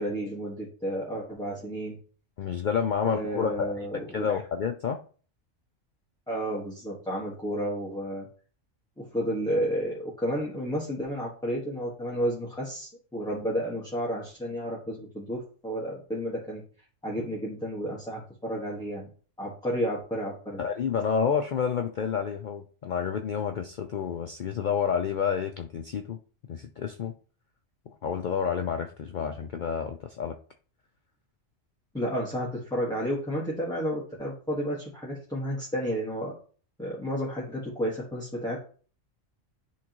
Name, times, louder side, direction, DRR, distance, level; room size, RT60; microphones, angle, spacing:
voice 1, 0.0-2.0 3.0-4.3 6.3-8.3 9.1-16.6 17.0-19.1 19.4-20.6 31.9-36.3 36.8-38.6, equal, 5° left, -5 dB, 1.4 m, -31 dB
voice 2, 2.4-5.0 20.6-26.2 26.5-27.1 27.9-30.4, left 7 dB, 80° left, 6 dB, 0.4 m, -29 dB
10.0 x 3.6 x 3.0 m, 0.41 s
omnidirectional pair, 1.4 m